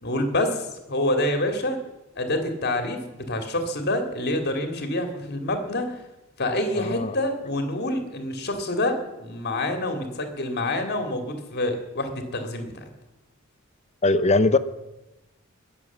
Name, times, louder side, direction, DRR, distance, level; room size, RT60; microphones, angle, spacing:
voice 1, 0.0-1.8 2.2-5.9 6.4-12.8, left 1 dB, 55° left, 6 dB, 2.3 m, -27 dB
voice 2, 6.8-7.1 14.0-14.6, left 2 dB, 35° left, 14 dB, 0.7 m, -20 dB
21.0 x 7.1 x 7.2 m, 0.99 s
head